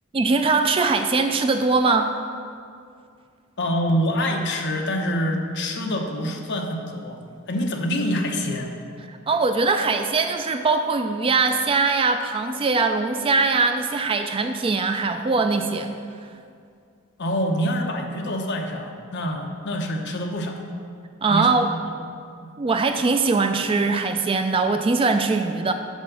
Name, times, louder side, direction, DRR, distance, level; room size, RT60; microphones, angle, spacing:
voice 1, 0.1-2.1 9.3-15.9 21.2-21.7 22.6-25.7, right 4 dB, 25° right, 7 dB, 0.3 m, -21 dB
voice 2, 3.6-7.2 7.5-8.7 17.2-20.6 21.3-21.5 22.4-22.5, equal, 55° left, 2 dB, 0.9 m, -26 dB
6.2 x 5.6 x 6.8 m, 2.3 s
head